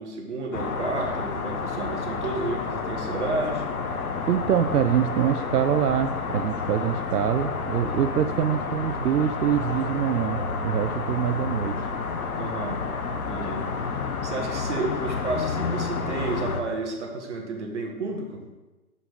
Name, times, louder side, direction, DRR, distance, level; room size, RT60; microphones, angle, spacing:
voice 1, 0.0-3.6 12.3-12.8 13.3-13.7 14.2-18.4, right 3 dB, 50° right, 1 dB, 1.4 m, -31 dB
sound 1, 0.5-16.6, left 4 dB, 75° left, 1.0 m, -30 dB
voice 2, 4.3-11.8, right 9 dB, 90° right, 9 dB, 0.5 m, -25 dB
6.7 x 5.8 x 3.9 m, 1.1 s
hypercardioid pair, 160°, 45 cm